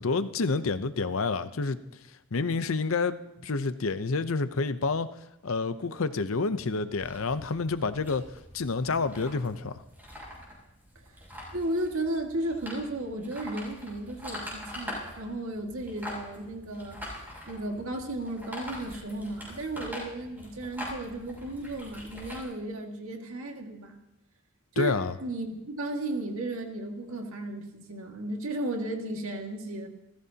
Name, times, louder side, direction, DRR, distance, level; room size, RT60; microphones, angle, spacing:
voice 1, 0.0-1.8 2.3-3.2 3.4-5.1 5.4-8.2 8.5-9.7 24.8-25.2, left 4 dB, 70° left, 12 dB, 0.7 m, -28 dB
sound 1, 7.0-22.4, left 1 dB, 10° right, 7.1 m, -43 dB
voice 2, 11.5-17.0 17.5-24.0 24.7-29.9, right 1 dB, 70° right, 2 dB, 1.9 m, -34 dB
28.5 x 15.0 x 2.9 m, 0.87 s
head